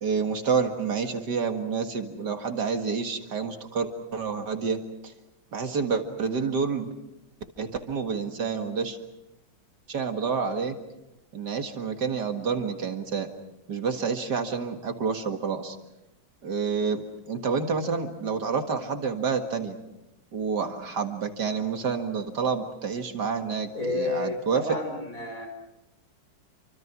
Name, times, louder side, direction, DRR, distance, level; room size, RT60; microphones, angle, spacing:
voice 1, 0.0-5.1 5.5-6.9 7.6-9.0 9.9-10.8 11.3-13.3 13.7-15.8 16.4-19.8 20.3-24.6, right 5 dB, 65° right, 6 dB, 2.4 m, -29 dB
voice 2, 23.7-25.5, left 2 dB, 45° left, 4 dB, 5.6 m, -30 dB
29.5 x 25.0 x 6.1 m, 0.93 s
omnidirectional pair, 2.0 m